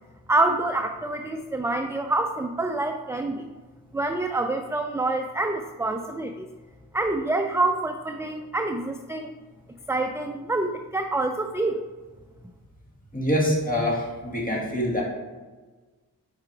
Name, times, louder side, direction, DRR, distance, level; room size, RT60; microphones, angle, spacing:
voice 1, 0.3-3.5 3.9-6.5 6.9-9.4 9.9-11.8, right 2 dB, 10° right, 5 dB, 0.3 m, -26 dB
voice 2, 13.1-15.0, equal, 20° left, -4 dB, 2.0 m, -25 dB
4.8 x 4.7 x 4.6 m, 1.3 s
cardioid pair, 50°, 38 cm